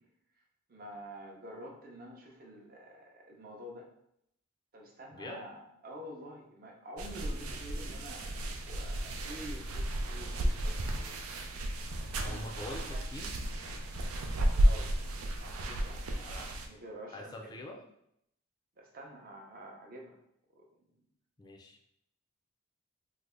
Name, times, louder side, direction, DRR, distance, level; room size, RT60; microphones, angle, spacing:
voice 1, 0.7-3.9 4.7-11.2 12.0-12.5 12.9-13.0 14.6-14.9 15.4-16.0 16.7-17.7 18.8-20.2 20.5-20.7, equal, 45° right, 0 dB, 0.6 m, -48 dB
voice 2, 5.1-5.4 12.2-13.4 16.2-16.6 17.1-17.8 21.4-21.8, left 1 dB, 20° left, 1 dB, 0.4 m, -44 dB
sound 1, 7.0-16.7, right 1 dB, 90° right, 0.4 m, -33 dB
3.2 x 2.0 x 3.6 m, 0.75 s
head